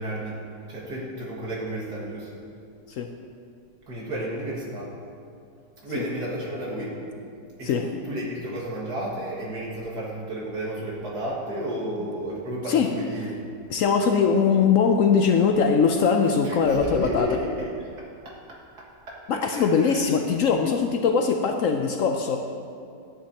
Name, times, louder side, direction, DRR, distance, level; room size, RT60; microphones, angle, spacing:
voice 1, 0.0-2.4 3.9-4.9 5.8-7.0 7.6-13.4 16.4-17.7 18.3-20.0, equal, 65° right, -5 dB, 2.4 m, -32 dB
voice 2, 13.7-17.3 19.3-22.4, left 6 dB, 70° left, 5 dB, 0.7 m, -21 dB
13.0 x 10.0 x 2.9 m, 2.4 s
omnidirectional pair, 1.9 m